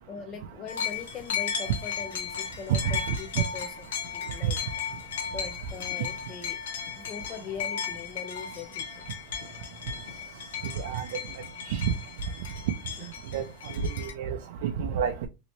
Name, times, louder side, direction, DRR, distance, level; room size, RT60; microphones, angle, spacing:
voice 1, 0.1-3.7 4.1-4.6 5.3-6.6 7.0-9.0 13.0-13.1, left 5 dB, 25° left, 0.4 m, -41 dB
sound 1, 0.7-14.1, left 7 dB, 90° left, 0.8 m, -35 dB
voice 2, 10.8-11.2 11.7-11.9 13.3-13.4 13.8-15.3, right 8 dB, 65° right, 0.4 m, -29 dB
3.1 x 2.8 x 2.9 m
supercardioid pair, 160°, 0 cm